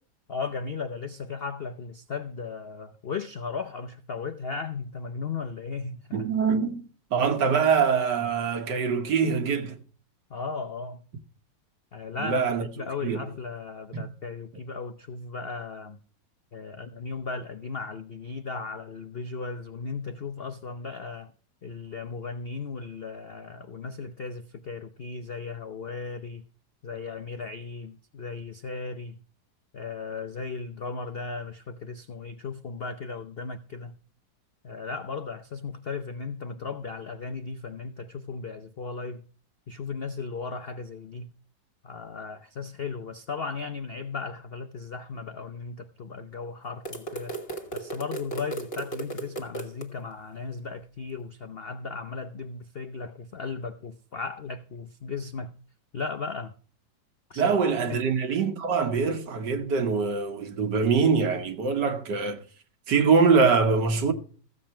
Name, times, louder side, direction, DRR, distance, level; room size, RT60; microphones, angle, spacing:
voice 1, 0.3-6.3 10.3-11.0 11.9-16.0 16.5-21.3 21.6-26.5 26.8-29.2 29.7-33.9 34.6-39.2 39.7-41.3 41.8-47.4 47.7-55.5 55.9-56.5 57.3-57.5 57.9-58.1, left 4 dB, 75° left, 0.5 m, -36 dB
voice 2, 6.1-6.8 7.1-9.8 12.2-12.7 13.0-13.2 13.9-14.1 57.4-62.4 62.9-64.1, right 5 dB, 65° right, 1.9 m, -23 dB
sound 1, 46.8-49.9, right 3 dB, 35° left, 1.6 m, -36 dB
15.0 x 7.5 x 4.3 m
omnidirectional pair, 2.0 m